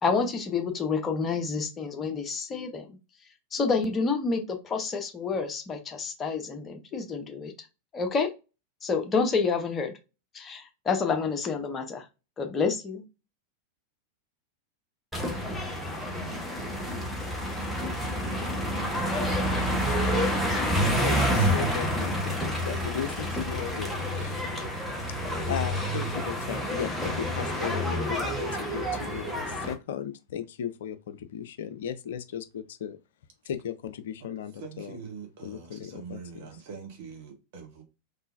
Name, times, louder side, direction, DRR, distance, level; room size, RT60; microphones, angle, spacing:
voice 1, 0.0-2.8 3.5-7.5 7.9-8.3 8.8-9.9 10.3-12.0 12.4-13.0, left 4 dB, 25° left, 0.9 m, -28 dB
sound 1, 15.1-29.7, equal, ahead, 1.1 m, -28 dB
voice 2, 20.0-24.4 25.2-33.0 33.4-35.0 35.4-36.5, left 8 dB, 60° left, 0.4 m, -37 dB
voice 3, 34.5-37.8, right 5 dB, 50° right, 1.3 m, -43 dB
3.7 x 3.2 x 2.5 m
figure-of-eight pair, 90°, 0 cm